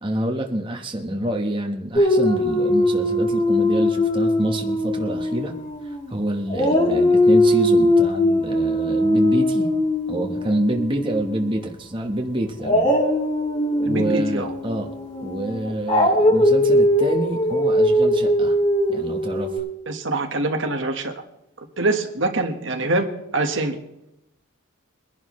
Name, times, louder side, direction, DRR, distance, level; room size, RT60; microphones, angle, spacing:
voice 1, 0.0-5.5 5.8-9.7 10.1-12.9 13.8-14.9 15.2-18.6 18.9-19.6, right 1 dB, 25° right, 1 dB, 1.2 m, -27 dB
Dog, 1.9-6.1 6.5-11.5 12.6-19.6, left 1 dB, 35° left, 5.7 m, -20 dB
voice 2, 13.8-14.5 19.9-21.1 21.8-23.1 23.3-23.8, right 2 dB, 65° right, 5 dB, 1.5 m, -24 dB
23.0 x 11.0 x 3.2 m, 0.85 s
head